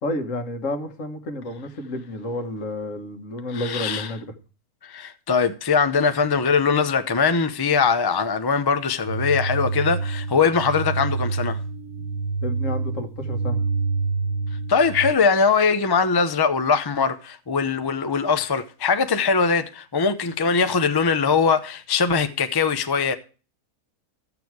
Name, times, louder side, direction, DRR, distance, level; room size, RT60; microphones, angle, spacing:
voice 1, 0.0-4.3 12.4-13.6, left 1 dB, 55° left, 1.7 m, -30 dB
voice 2, 3.5-4.1 4.8-11.6 14.7-23.1, left 5 dB, 35° left, 0.3 m, -21 dB
sound 1, 9.1-15.1, right 4 dB, 85° right, 1.3 m, -27 dB
13.5 x 6.9 x 4.6 m
omnidirectional pair, 1.6 m